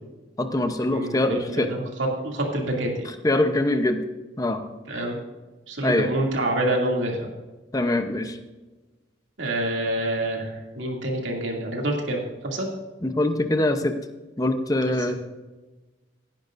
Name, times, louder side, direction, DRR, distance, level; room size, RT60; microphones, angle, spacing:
voice 1, 0.4-1.7 3.0-4.0 4.4-4.6 5.8-6.1 7.7-8.4 13.0-14.0 14.4-15.2, left 1 dB, 20° left, 8 dB, 0.7 m, -23 dB
voice 2, 0.9-1.8 2.2-3.1 4.9-5.2 5.7-7.3 9.4-12.7, right 1 dB, 80° right, 0 dB, 2.5 m, -27 dB
17.0 x 10.0 x 2.6 m, 1.2 s
head